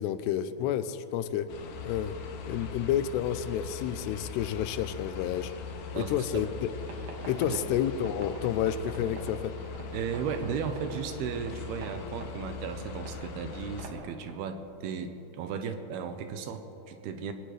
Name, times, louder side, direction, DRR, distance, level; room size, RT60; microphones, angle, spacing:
voice 1, 0.0-1.5 1.8-2.1 2.4-5.5 5.9-6.7 7.2-9.5, left 10 dB, 85° left, 12 dB, 2.7 m, -30 dB
sound 1, 1.5-13.9, left 5 dB, 65° left, 2.4 m, -41 dB
voice 2, 5.9-6.5 7.5-7.6 9.9-17.3, right 6 dB, 75° right, 8 dB, 2.7 m, -35 dB
sound 2, 6.8-14.4, right 3 dB, 50° right, 2.6 m, -46 dB
22.5 x 18.0 x 3.3 m, 2.9 s
omnidirectional pair, 4.8 m